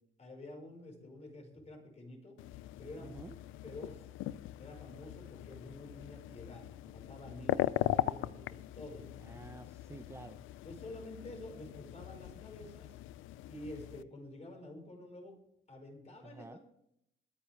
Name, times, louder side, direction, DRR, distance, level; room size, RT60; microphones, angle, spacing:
voice 1, 0.2-2.4 2.8-3.2 3.6-4.1 4.6-9.3 10.6-13.0 13.5-15.4 15.7-16.5, left 1 dB, 35° left, 2 dB, 5.6 m, -49 dB
sound 1, 2.4-14.0, left 15 dB, 90° left, 0.5 m, -40 dB
voice 2, 3.0-3.4 9.2-10.5 16.2-16.6, right 3 dB, 15° right, 9 dB, 0.7 m, -50 dB
22.0 x 9.7 x 3.6 m, 0.76 s
cardioid pair, 90°, 20 cm